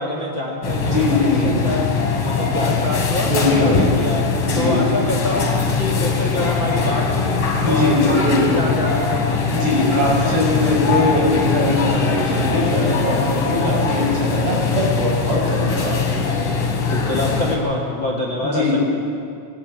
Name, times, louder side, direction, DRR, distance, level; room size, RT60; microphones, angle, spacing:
voice 1, 0.0-1.9 2.2-4.2 4.6-5.5 5.8-9.4 16.9-18.8, left 1 dB, 40° left, 0 dB, 2.0 m, -25 dB
sound 1, 0.6-17.6, left 5 dB, 55° left, 4.0 m, -21 dB
voice 2, 0.8-1.6 3.3-3.8 4.5-4.8 7.6-8.7 9.5-16.1 18.4-18.8, left 1 dB, 80° right, -4 dB, 8.8 m, -21 dB
20.5 x 18.5 x 8.9 m, 2.4 s
omnidirectional pair, 4.7 m